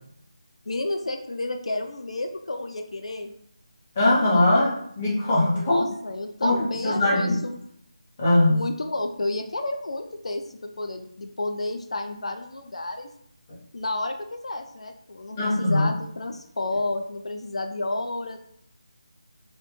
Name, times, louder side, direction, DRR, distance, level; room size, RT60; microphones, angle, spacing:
voice 1, 0.7-3.3 5.5-7.6 8.5-10.4 10.8-13.1 13.7-18.4, left 2 dB, 85° left, 5 dB, 0.3 m, -31 dB
voice 2, 4.0-5.8 6.4-7.4 8.2-8.6 15.4-15.9, left 1 dB, 20° left, -5 dB, 0.6 m, -21 dB
2.4 x 2.2 x 2.9 m, 0.69 s
figure-of-eight pair, 170°, 3 cm